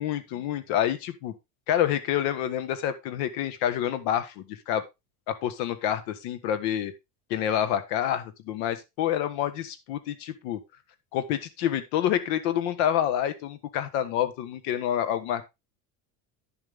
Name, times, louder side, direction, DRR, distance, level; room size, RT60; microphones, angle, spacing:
voice 1, 0.0-1.3 1.7-4.8 5.3-6.9 7.3-10.6 11.1-15.4, left 10 dB, 65° left, 10 dB, 1.5 m, -28 dB
10.0 x 7.4 x 3.5 m, 0.23 s
cardioid pair, 180°, 42 cm